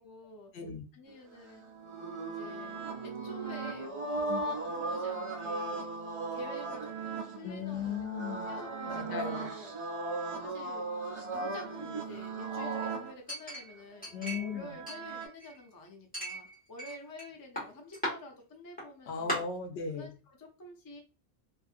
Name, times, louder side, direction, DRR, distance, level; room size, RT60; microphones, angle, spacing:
voice 1, 0.0-0.5 0.9-1.6 2.2-4.4 4.7-5.9 6.3-8.1 8.4-9.8 10.4-10.9 11.3-19.5 19.9-21.0, left 1 dB, 30° left, 2 dB, 0.4 m, -49 dB
voice 2, 0.5-0.8 4.3-4.4 7.4-8.5 8.9-9.5 14.1-14.7 19.1-20.1, left 6 dB, 70° left, 4 dB, 0.9 m, -37 dB
sound 1, 1.3-13.1 14.2-15.3, right 3 dB, 40° right, 0.4 m, -37 dB
Chink clink, 13.3-14.6 14.9-15.6 16.1-17.3 17.6-18.1 18.8-18.9 19.3-19.4, equal, 10° left, 1.4 m, -37 dB
2.7 x 2.5 x 2.4 m, 0.33 s
omnidirectional pair, 1.1 m